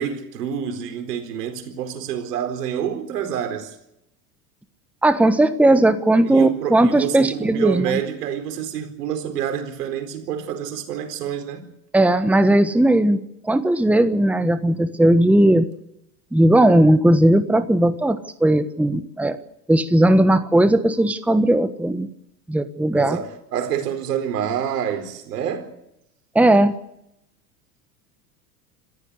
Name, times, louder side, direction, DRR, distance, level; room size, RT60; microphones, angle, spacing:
voice 1, 0.0-3.8 6.2-11.6 22.9-25.7, right 9 dB, 75° right, 4.4 m, -27 dB
voice 2, 5.0-8.0 11.9-13.2 13.4-15.7 16.3-19.4 19.7-22.1 22.5-23.2 26.3-26.7, right 1 dB, 5° right, 1.4 m, -17 dB
26.5 x 15.0 x 8.1 m
hypercardioid pair, 90°, 47 cm